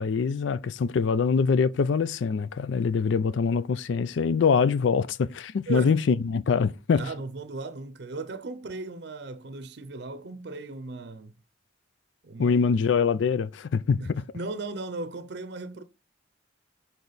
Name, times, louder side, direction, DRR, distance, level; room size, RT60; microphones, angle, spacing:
voice 1, 0.0-7.0 12.4-14.2, left 5 dB, 75° left, 0.4 m, -24 dB
voice 2, 5.7-6.1 6.9-11.3 12.2-12.6 14.0-15.8, right 3 dB, 60° right, 0.6 m, -37 dB
6.7 x 4.5 x 4.0 m
head